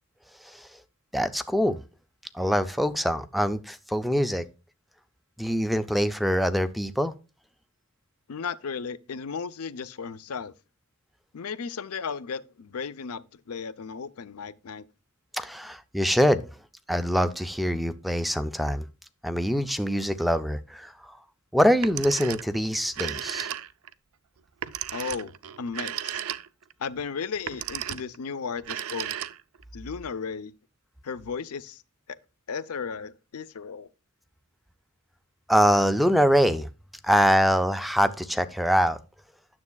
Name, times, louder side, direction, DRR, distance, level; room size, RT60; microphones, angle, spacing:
voice 1, 1.1-1.8 2.3-4.4 5.4-7.1 15.3-16.4 16.9-18.9 19.2-20.9 21.5-23.5 35.5-36.7 37.0-39.0, equal, ahead, 0.4 m, -24 dB
voice 2, 8.3-10.5 11.3-14.8 24.9-26.2 26.8-29.1 29.7-30.5 31.0-31.8 32.1-32.2 32.5-33.9, left 5 dB, 85° left, 0.5 m, -35 dB
Telephone, 21.7-22.6 22.9-23.9 24.6-26.7 27.3-28.2 28.6-29.6, right 11 dB, 70° right, 0.5 m, -34 dB
9.5 x 7.0 x 2.3 m
head